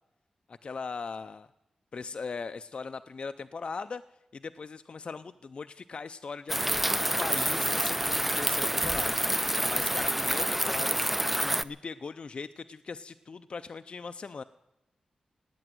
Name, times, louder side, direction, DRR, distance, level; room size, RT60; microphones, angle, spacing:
voice 1, 0.5-1.5 1.9-4.0 4.3-11.1 11.4-14.4, left 4 dB, 50° left, 10 dB, 0.5 m, -39 dB
sound 1, 6.5-11.6, right 1 dB, 5° right, 0.5 m, -28 dB
17.0 x 9.0 x 9.3 m, 0.90 s
wide cardioid pair, 100°, 2 cm